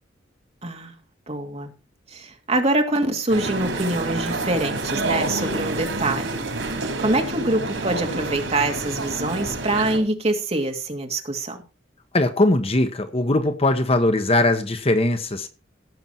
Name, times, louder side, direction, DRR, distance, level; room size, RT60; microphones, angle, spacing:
voice 1, 0.6-0.9 1.3-1.7 2.1-6.4 7.0-11.6, right 2 dB, 35° right, 2.4 m, -24 dB
sound 1, 3.3-10.0, right 2 dB, 85° right, 4.2 m, -28 dB
voice 2, 12.1-15.5, left 2 dB, 30° left, 1.1 m, -20 dB
16.5 x 7.0 x 4.4 m
head